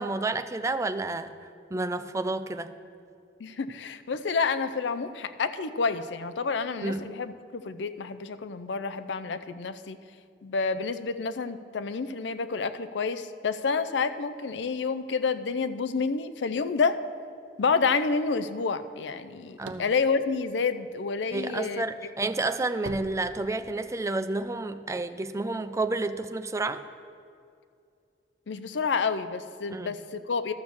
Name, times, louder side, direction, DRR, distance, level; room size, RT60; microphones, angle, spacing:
voice 1, 0.0-1.3 1.7-2.7 6.8-7.1 19.6-19.9 21.3-26.8 29.7-30.0, right 2 dB, 15° right, 10 dB, 0.4 m, -30 dB
voice 2, 3.4-10.0 10.4-17.0 17.6-21.8 28.5-30.5, left 4 dB, 75° left, 11 dB, 0.5 m, -29 dB
sound 1, 19.4-21.3 21.8-24.0, right 3 dB, 75° right, 0.6 m, -43 dB
12.5 x 6.2 x 7.0 m, 2.4 s
head